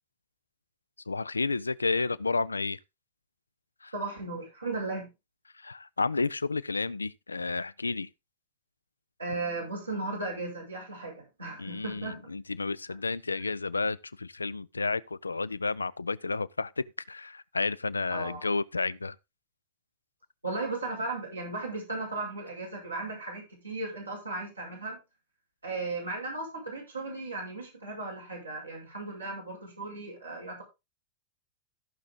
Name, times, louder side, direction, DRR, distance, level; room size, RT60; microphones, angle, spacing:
voice 1, 1.1-2.8 3.8-3.9 5.6-8.1 11.6-19.2, left 3 dB, 80° left, 0.4 m, -31 dB
voice 2, 3.9-5.1 9.2-12.3 18.1-18.4 20.4-25.0 25.6-30.6, right 3 dB, 85° right, 5.6 m, -36 dB
14.0 x 6.1 x 3.7 m
figure-of-eight pair, 90°, 0 cm